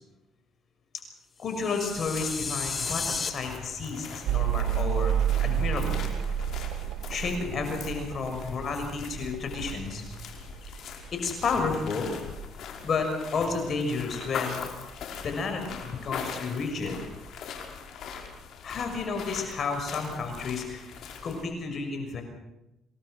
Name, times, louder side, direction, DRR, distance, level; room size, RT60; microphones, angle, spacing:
voice 1, 1.4-5.2 5.4-6.1 7.1-10.1 10.7-10.8 11.1-12.1 12.8-14.6 15.2-17.0 18.6-20.9 21.2-22.2, left 4 dB, 50° left, 5 dB, 6.0 m, -31 dB
sound 1, 1.5-3.3, left 5 dB, 35° left, 2.3 m, -33 dB
sound 2, 1.8-21.4, left 6 dB, 65° left, 5.4 m, -42 dB
Mechanical fan, 4.3-11.1 11.4-12.2, right 10 dB, 75° right, 1.8 m, -30 dB
28.0 x 19.0 x 6.4 m, 0.92 s
cardioid pair, 85°, 0 cm